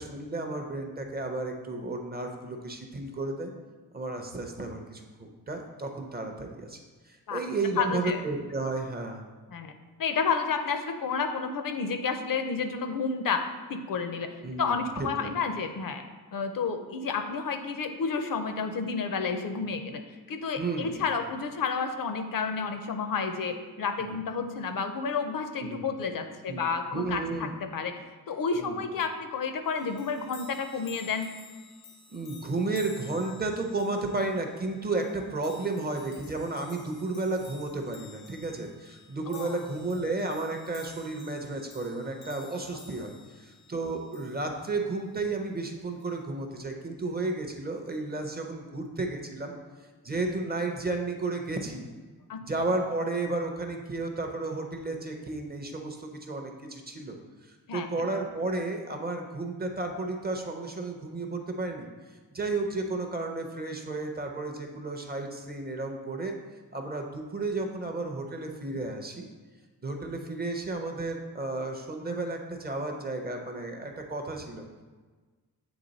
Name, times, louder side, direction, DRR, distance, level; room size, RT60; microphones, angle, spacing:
voice 1, 0.0-3.5 3.9-6.8 7.1-9.2 14.4-15.3 20.6-21.0 24.0-24.2 25.6-25.9 26.5-26.6 26.9-27.5 28.6-28.8 32.1-43.1 43.4-49.5 50.0-51.9 52.4-57.2 57.4-61.9 62.3-66.4 66.7-69.3 69.8-74.6, right 2 dB, 25° right, 3 dB, 0.5 m, -33 dB
voice 2, 7.8-8.2 9.5-9.7 10.0-13.4 13.7-16.0 16.3-20.0 20.3-28.0 28.3-31.3 39.3-39.6 52.3-52.4 57.7-57.9, left 5 dB, 60° left, 7 dB, 0.6 m, -30 dB
sound 1, 29.8-44.8 46.0-46.2, left 5 dB, 85° left, 0.8 m, -52 dB
8.0 x 3.3 x 3.9 m, 1.4 s
wide cardioid pair, 180°, 37 cm